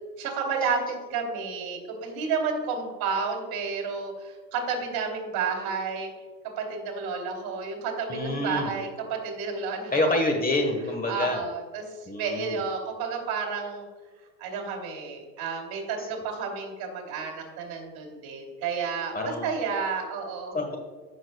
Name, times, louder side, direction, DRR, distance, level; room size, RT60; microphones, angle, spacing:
voice 1, 0.2-6.1 6.6-10.2 11.1-13.9 14.4-20.6, right 5 dB, 55° right, 2 dB, 2.6 m, -31 dB
voice 2, 8.1-8.7 9.9-11.4 12.1-12.6 16.0-16.1 19.1-19.5 20.5-20.8, left 2 dB, 20° left, 4 dB, 1.2 m, -27 dB
15.0 x 6.3 x 2.3 m, 1.4 s
supercardioid pair, 110°, 44 cm